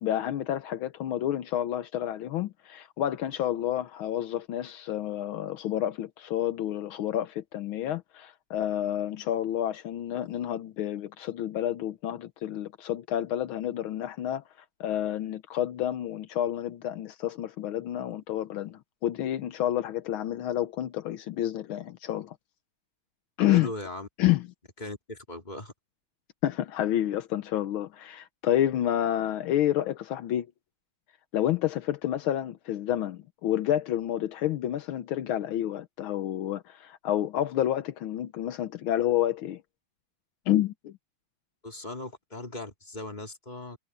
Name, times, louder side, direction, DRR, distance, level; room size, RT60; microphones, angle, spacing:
voice 1, 0.0-14.4 14.8-22.4 23.4-23.7 24.2-24.5 26.4-30.5 31.3-39.6 40.5-40.9, left 12 dB, 80° left, 1.6 m, -29 dB
voice 2, 23.5-24.1 24.8-25.7 41.6-43.8, left 2 dB, 20° left, 3.1 m, -38 dB
omnidirectional pair, 2.3 m